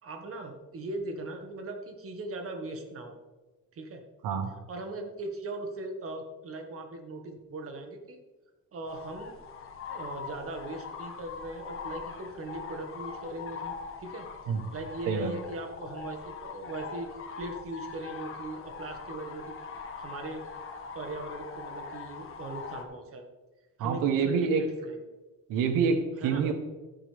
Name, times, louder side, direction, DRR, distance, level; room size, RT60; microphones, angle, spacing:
voice 1, 0.0-3.1 3.7-4.0 4.7-8.2 8.7-9.3 9.9-14.3 14.7-17.1 17.4-19.5 20.0-20.4 20.9-23.2 23.8-24.9 26.2-26.4, right 2 dB, 45° right, 4 dB, 1.8 m, -39 dB
sound 1, 8.9-22.8, left 5 dB, 40° left, 1.6 m, -42 dB
voice 2, 23.8-24.6 25.5-26.5, right 6 dB, 85° right, 7 dB, 1.3 m, -26 dB
14.0 x 10.5 x 3.5 m, 1.2 s
cardioid pair, 140°, 32 cm